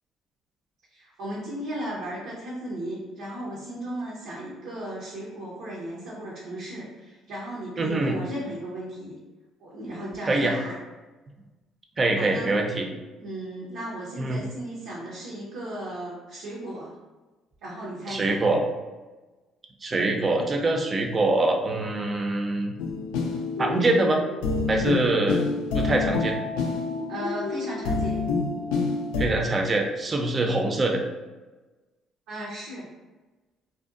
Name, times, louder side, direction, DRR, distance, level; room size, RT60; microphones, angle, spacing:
voice 1, 0.9-9.1 9.6-10.7 12.2-12.5 13.2-16.9 17.6-18.4 27.1-28.2 32.3-32.9, right 1 dB, 80° right, -6 dB, 0.6 m, -36 dB
voice 2, 7.8-8.1 10.2-10.5 12.0-12.9 14.2-14.4 18.1-18.6 19.8-22.7 23.6-24.2 24.7-25.4 25.7-26.4 29.2-31.0, right 2 dB, 35° right, 2 dB, 0.5 m, -24 dB
sound 1, 22.8-29.3, left 4 dB, 85° left, 0.3 m, -27 dB
2.6 x 2.2 x 2.4 m, 1.2 s
supercardioid pair, 65°, 0 cm